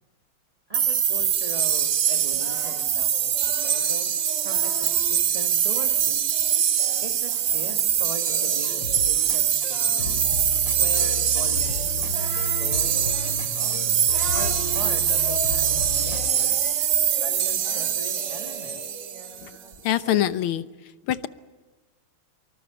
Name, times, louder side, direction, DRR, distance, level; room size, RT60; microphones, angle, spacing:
voice 1, 0.7-4.2 4.4-6.2 7.0-10.2 10.7-13.8 14.3-16.6 17.2-18.9, right 2 dB, 15° right, 3 dB, 1.9 m, -40 dB
sound 1, 0.7-19.4, right 9 dB, 70° right, 2.0 m, -23 dB
Singing, 2.1-5.2 5.7-20.2, right 1 dB, 35° right, 4.7 m, -41 dB
sound 2, 8.3-16.3, left 4 dB, 60° left, 3.5 m, -34 dB
voice 2, 19.8-20.7 21.1-21.3, left 12 dB, 75° left, 12 dB, 1.8 m, -24 dB
25.5 x 24.0 x 8.2 m, 1.3 s
omnidirectional pair, 2.4 m